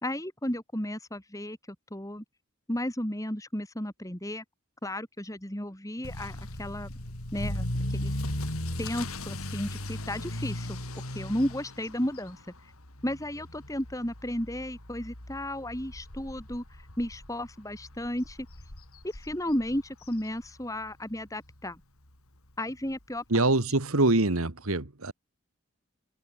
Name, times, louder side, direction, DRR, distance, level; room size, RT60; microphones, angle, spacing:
voice 1, 0.0-2.2 2.7-4.4 4.8-6.9 7.3-7.6 7.9-8.2 8.8-12.4 13.0-16.6 17.0-18.4 19.0-21.8 22.6-23.5, left 1 dB, 15° left, 2.9 m, -33 dB
Motor vehicle (road) / Accelerating revving vroom, 6.0-20.9 21.2-21.6 22.1-22.2 22.5-22.6 22.9-23.0 24.3-24.4, left 1 dB, 80° left, 4.3 m, -37 dB
voice 2, 23.3-25.1, right 2 dB, 75° right, 1.9 m, -24 dB
head